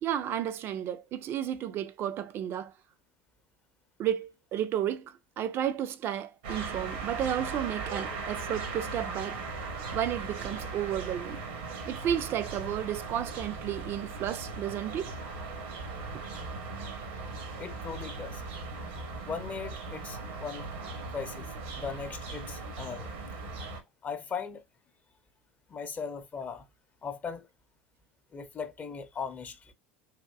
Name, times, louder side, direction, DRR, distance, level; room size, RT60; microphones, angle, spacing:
voice 1, 0.0-2.7 4.0-9.4 9.9-11.4 11.9-15.1, right 10 dB, 45° right, 0.4 m, -32 dB
sound 1, 6.4-23.8, right 4 dB, 75° right, 0.9 m, -38 dB
voice 2, 17.6-18.4 19.2-20.7 21.1-23.1 24.0-24.6 25.7-26.7 27.0-27.5 28.3-29.7, left 6 dB, 30° left, 0.6 m, -38 dB
3.5 x 2.5 x 2.3 m
hypercardioid pair, 75°, 6 cm